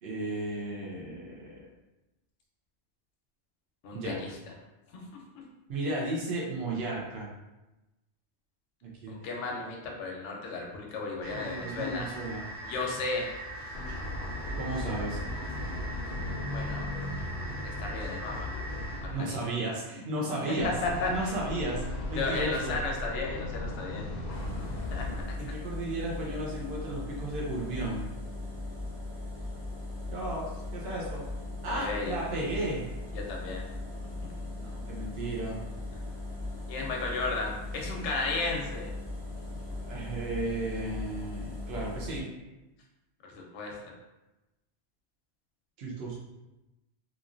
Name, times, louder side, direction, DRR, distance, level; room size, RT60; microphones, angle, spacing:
voice 1, 0.0-1.7 3.9-4.2 5.7-7.3 8.8-9.2 11.3-12.5 14.6-15.2 19.1-20.7 21.1-21.8 22.1-22.8 25.4-28.1 30.1-31.2 31.6-32.9 34.6-35.6 39.8-42.3 45.8-46.2, right 2 dB, 65° right, -4 dB, 0.8 m, -34 dB
voice 2, 3.8-4.3 4.9-5.0 9.1-12.1 12.6-13.3 16.5-16.9 17.6-18.5 19.0-19.4 20.8-21.3 22.2-24.1 24.7-25.3 31.7-32.1 33.1-33.6 36.7-38.9 43.2-43.9, left 3 dB, 90° left, -1 dB, 1.0 m, -34 dB
sound 1, 11.2-19.0, right 1 dB, 85° right, 1.2 m, -41 dB
sound 2, 13.7-19.2 20.6-25.3, left 1 dB, 60° left, 0.7 m, -36 dB
sound 3, 24.3-42.2, left 2 dB, 25° right, 0.6 m, -39 dB
3.0 x 2.5 x 2.4 m, 1.0 s
omnidirectional pair, 1.2 m